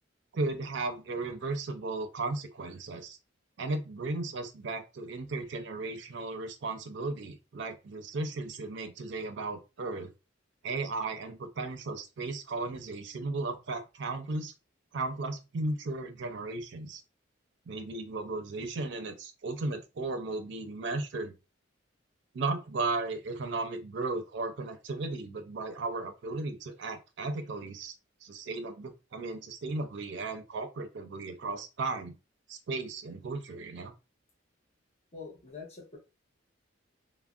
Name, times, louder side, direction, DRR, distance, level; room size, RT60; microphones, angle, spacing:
voice 1, 0.3-3.2 3.6-10.1 10.6-14.5 14.9-17.0 17.7-21.3 22.3-27.9 28.2-32.1 32.5-33.9, right 3 dB, 60° right, 0.4 m, -35 dB
voice 2, 35.1-36.0, left 4 dB, 35° left, 0.8 m, -45 dB
3.3 x 2.0 x 2.3 m
head